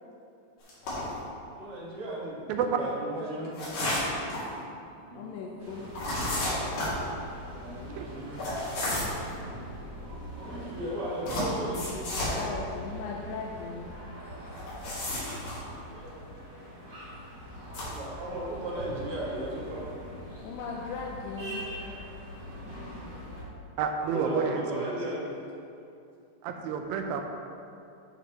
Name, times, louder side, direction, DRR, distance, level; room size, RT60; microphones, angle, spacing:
sound 1, 0.7-1.2 3.5-4.5 5.9-7.0 8.4-9.2 11.3-12.4 14.5-15.6 17.6-18.0, left 1 dB, 60° left, 3.8 m, -31 dB
voice 1, 1.5-2.4 2.8-3.5 4.9-5.3 7.4-8.4 10.0-12.6 15.9-16.3 17.8-19.8 21.8-21.9 24.0-25.3, right 1 dB, 55° right, -6 dB, 1.7 m, -36 dB
voice 2, 5.1-6.0 12.3-14.0 20.4-21.7, left 5 dB, 80° left, -1 dB, 2.1 m, -38 dB
sound 2, 5.6-23.4, equal, 35° right, 1.1 m, -43 dB
voice 3, 23.8-24.9 26.4-27.2, right 6 dB, 80° right, 4 dB, 2.3 m, -29 dB
11.5 x 7.0 x 2.9 m, 2.6 s
omnidirectional pair, 4.4 m